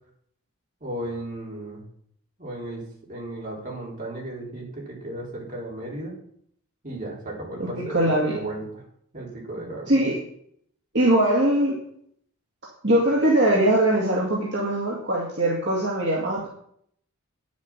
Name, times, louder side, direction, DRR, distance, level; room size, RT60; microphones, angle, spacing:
voice 1, 0.8-1.8 2.4-2.8 3.1-6.2 6.8-8.0 8.3-8.8 9.1-10.0, right 1 dB, 35° right, -3 dB, 3.9 m, -35 dB
voice 2, 7.6-8.4 9.9-10.2 10.9-11.8 12.8-16.5, right 1 dB, 50° right, -4 dB, 2.3 m, -21 dB
10.0 x 7.4 x 6.0 m, 0.67 s
head